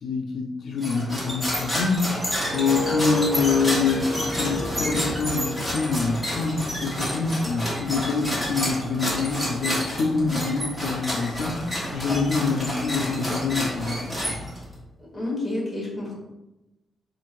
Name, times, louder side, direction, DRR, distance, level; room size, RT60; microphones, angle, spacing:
voice 1, 0.0-14.5, left 4 dB, 60° left, 2 dB, 0.4 m, -26 dB
sound 1, 0.8-14.7, equal, 10° right, 1.2 m, -29 dB
sound 2, 1.6-6.7 7.0-7.4, left 1 dB, 50° right, 0.5 m, -33 dB
voice 2, 15.1-16.1, left 2 dB, 5° left, -4 dB, 1.4 m, -29 dB
4.4 x 2.5 x 4.5 m, 0.96 s
wide cardioid pair, 175°, 0 cm